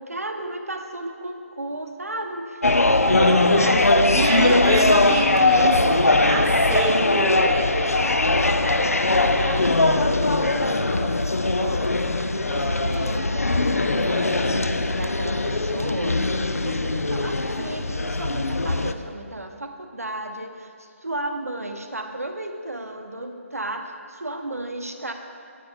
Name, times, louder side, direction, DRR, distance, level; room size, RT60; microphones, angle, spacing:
voice 1, 0.0-2.6 3.1-4.6 7.4-11.2 11.6-11.9 12.4-14.7 14.9-25.1, right 1 dB, 80° right, 5 dB, 0.8 m, -33 dB
sound 1, 2.6-18.9, left 2 dB, 80° left, 0.5 m, -20 dB
voice 2, 4.1-7.6, right 3 dB, 15° right, 2 dB, 0.6 m, -27 dB
9.5 x 8.6 x 3.4 m, 2.4 s
figure-of-eight pair, 145°, 8 cm